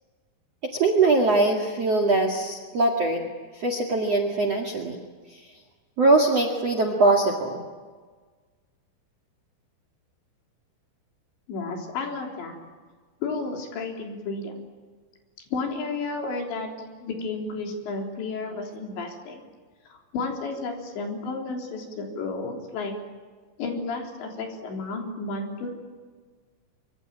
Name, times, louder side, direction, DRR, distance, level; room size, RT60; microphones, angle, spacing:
voice 1, 0.6-3.3 3.5-5.0 5.3-5.4 6.0-7.6, right 2 dB, 45° right, 5 dB, 2.1 m, -22 dB
voice 2, 11.5-12.6 13.2-14.5 15.5-16.7 17.0-19.4 19.9-22.9 23.6-25.7, left 3 dB, 65° left, 2 dB, 5.7 m, -32 dB
24.5 x 24.5 x 9.0 m, 1.5 s
omnidirectional pair, 5.7 m